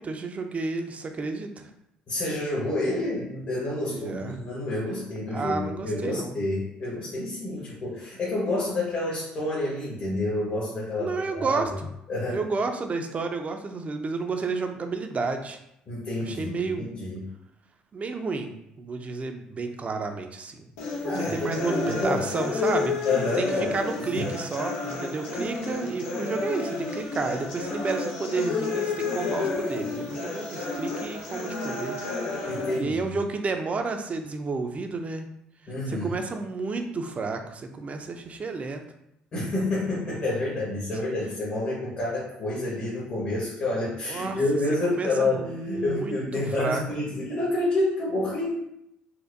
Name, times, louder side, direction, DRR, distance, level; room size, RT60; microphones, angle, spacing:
voice 1, 0.0-1.7 3.8-4.4 5.3-6.4 11.0-11.9 12.3-15.6 16.2-16.9 17.9-20.7 21.0-22.9 23.4-23.5 23.7-32.1 32.4-35.3 35.9-38.8 44.1-44.4 44.9-46.8, right 4 dB, 35° right, 5 dB, 0.5 m, -31 dB
voice 2, 2.1-11.6 12.1-12.4 15.9-17.2 21.0-22.2 23.0-24.3 32.5-33.1 35.7-36.2 39.3-48.5, left 2 dB, 50° left, -7 dB, 1.3 m, -29 dB
sound 1, 20.8-32.8, left 3 dB, 85° left, 0.7 m, -31 dB
4.2 x 2.2 x 2.6 m, 0.79 s
supercardioid pair, 65°, 4 cm